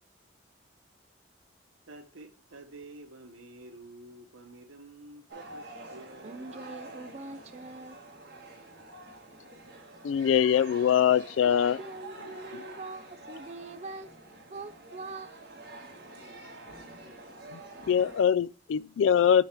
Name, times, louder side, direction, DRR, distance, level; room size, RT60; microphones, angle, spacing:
voice 1, 1.9-7.0, right 2 dB, 90° right, 1.0 m, -49 dB
sound 1, 5.3-18.2, right 2 dB, 50° right, 1.8 m, -47 dB
voice 2, 6.2-8.0 11.4-14.1 14.5-15.7, right 3 dB, 35° right, 0.4 m, -43 dB
voice 3, 10.0-11.8 17.5-17.6 17.9-19.4, left 8 dB, 75° left, 0.3 m, -23 dB
8.0 x 3.5 x 4.3 m
head